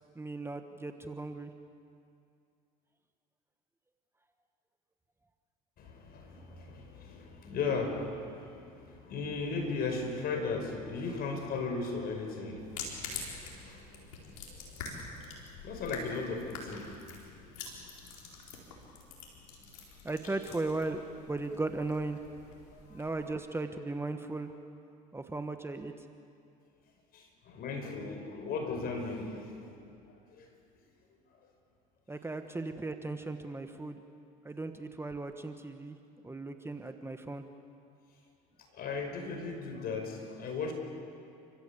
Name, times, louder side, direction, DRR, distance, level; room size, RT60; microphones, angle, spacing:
voice 1, 0.1-1.5 20.0-21.0 21.3-22.2 22.9-24.5 25.1-25.9 32.1-34.0 34.4-36.0 36.2-37.4, right 2 dB, 15° right, 7 dB, 1.4 m, -36 dB
voice 2, 5.8-14.3 14.8-15.3 15.6-16.9 17.3-17.4 17.7-17.8 22.7-22.8 27.1-29.7 30.4-30.5 38.7-40.7, left 4 dB, 55° left, 4 dB, 5.3 m, -37 dB
sound 1, 12.6-23.3, left 4 dB, 90° left, 4.4 m, -46 dB
29.5 x 15.0 x 8.4 m, 2.5 s
supercardioid pair, 75°, 19 cm